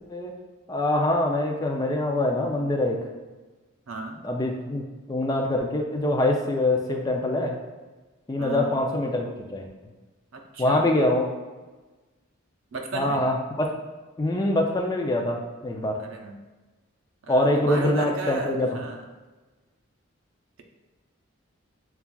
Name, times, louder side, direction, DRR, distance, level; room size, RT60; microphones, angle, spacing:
voice 1, 0.7-3.0 4.2-7.6 8.3-9.7 10.6-11.3 12.9-13.7 14.2-16.0 17.3-18.8, left 1 dB, 20° left, 1 dB, 0.3 m, -24 dB
voice 2, 3.9-4.2 8.4-8.8 10.3-10.9 12.7-13.2 16.0-16.4 17.2-19.0, right 3 dB, 70° right, 3 dB, 0.5 m, -35 dB
6.9 x 2.3 x 2.2 m, 1.2 s
head